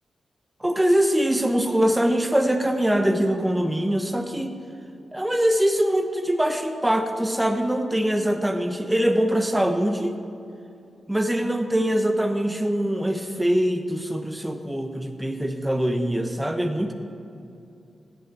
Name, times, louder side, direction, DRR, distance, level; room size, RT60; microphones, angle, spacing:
voice 1, 0.6-4.5 5.1-10.2 11.1-16.9, right 1 dB, 10° right, 6 dB, 0.9 m, -23 dB
14.5 x 10.0 x 4.7 m, 2.7 s
cardioid pair, 85°, 0 cm